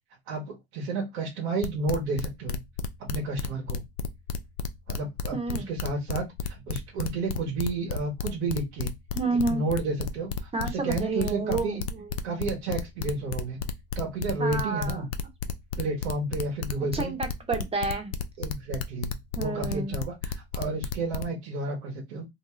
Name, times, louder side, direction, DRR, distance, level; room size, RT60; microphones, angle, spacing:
voice 1, 0.3-2.6 3.0-3.8 4.9-9.0 9.5-11.8 12.2-13.6 13.9-15.1 15.8-17.1 18.4-22.3, right 3 dB, 75° right, 1.1 m, -31 dB
sound 1, 1.6-21.2, left 6 dB, 65° left, 0.5 m, -32 dB
voice 2, 5.3-5.7 9.1-9.6 10.5-12.1 14.4-15.1 16.9-18.1 19.4-20.0, right 3 dB, 15° right, 1.0 m, -30 dB
2.7 x 2.2 x 3.0 m
hypercardioid pair, 80°, 33 cm